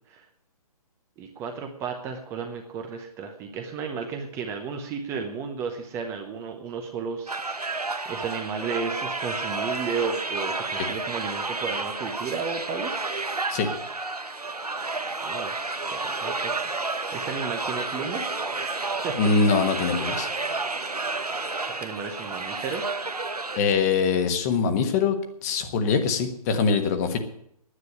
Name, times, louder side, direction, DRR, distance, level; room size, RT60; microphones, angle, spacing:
voice 1, 1.2-13.1 15.2-19.1 21.8-22.8, right 5 dB, 15° right, 4 dB, 0.8 m, -34 dB
sound 1, 7.3-23.6, right 3 dB, 85° right, 1.1 m, -31 dB
voice 2, 19.2-20.3 23.6-27.2, left 5 dB, 25° left, 7 dB, 1.4 m, -23 dB
9.9 x 9.4 x 9.6 m, 0.74 s
figure-of-eight pair, 135°, 19 cm